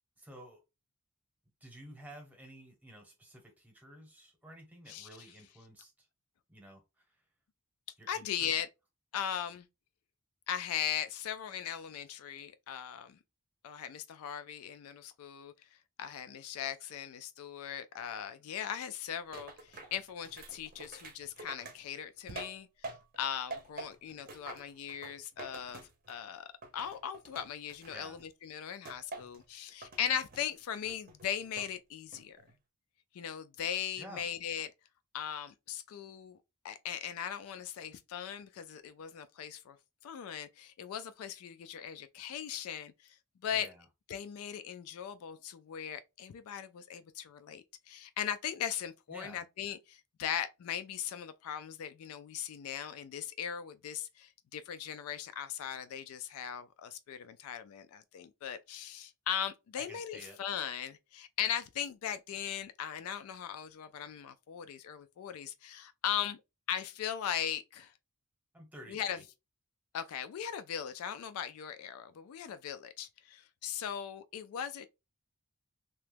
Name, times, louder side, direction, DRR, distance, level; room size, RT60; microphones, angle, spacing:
voice 1, 0.2-0.6 1.6-6.1 6.5-7.2 8.0-8.5 27.9-28.2 34.0-34.3 43.5-43.9 49.1-49.4 59.8-60.4 68.5-69.2, right 1 dB, 5° right, 0.9 m, -52 dB
voice 2, 8.1-8.7 9.1-9.7 10.5-13.2 13.6-15.5 16.0-25.8 26.1-26.5 26.7-32.4 33.1-34.7 35.1-36.4 36.6-39.8 40.0-42.9 43.4-43.7 44.1-66.4 66.7-67.9 68.9-69.2 69.9-74.9, left 9 dB, 70° left, 0.3 m, -39 dB
sound 1, 19.3-23.2 23.5-26.3 26.6-28.2 28.8-29.4 29.8-30.5 30.8-31.7 32.1-32.5, right 3 dB, 40° right, 0.6 m, -47 dB
2.9 x 2.2 x 3.3 m
head